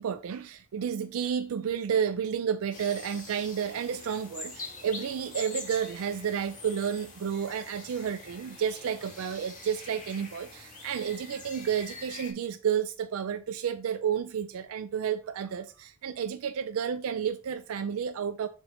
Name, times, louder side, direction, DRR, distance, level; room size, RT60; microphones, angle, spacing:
voice 1, 0.0-18.5, right 8 dB, 80° right, 0.4 m, -31 dB
sound 1, 2.7-12.3, left 3 dB, 40° left, 1.8 m, -45 dB
6.9 x 5.8 x 2.5 m
head